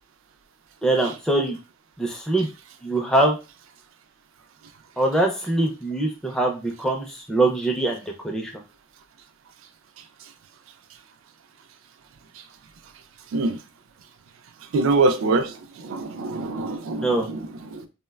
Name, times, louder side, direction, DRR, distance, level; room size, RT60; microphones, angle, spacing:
voice 1, 0.8-1.6 2.0-2.5 2.8-3.4 5.0-8.5 17.0-17.3, right 2 dB, 5° left, 0.4 m, -23 dB
voice 2, 14.7-17.9, right 3 dB, 70° right, 0.4 m, -24 dB
3.7 x 2.1 x 2.2 m
head